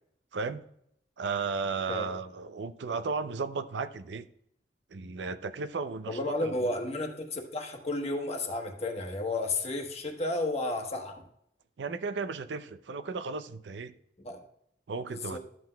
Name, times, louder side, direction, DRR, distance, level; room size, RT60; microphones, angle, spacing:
voice 1, 1.2-4.3 4.9-6.5 11.8-13.9 14.9-15.4, right 4 dB, 90° right, 13 dB, 0.5 m, -34 dB
voice 2, 6.1-11.2 14.2-14.4 15.1-15.4, left 2 dB, 40° left, 3 dB, 1.1 m, -32 dB
12.0 x 7.7 x 2.2 m, 0.74 s
head